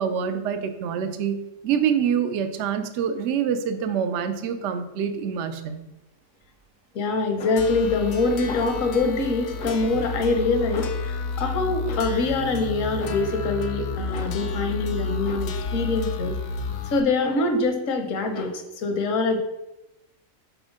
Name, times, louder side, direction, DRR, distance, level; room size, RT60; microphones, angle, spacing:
voice 1, 0.0-1.4 1.6-5.8, right 7 dB, 65° right, 9 dB, 0.9 m, -26 dB
voice 2, 6.9-16.3 16.9-19.4, left 3 dB, 70° left, 4 dB, 1.3 m, -24 dB
sound 1, 7.6-17.0, left 4 dB, 85° left, 1.1 m, -31 dB
6.2 x 4.3 x 5.0 m, 0.91 s
omnidirectional pair, 1.4 m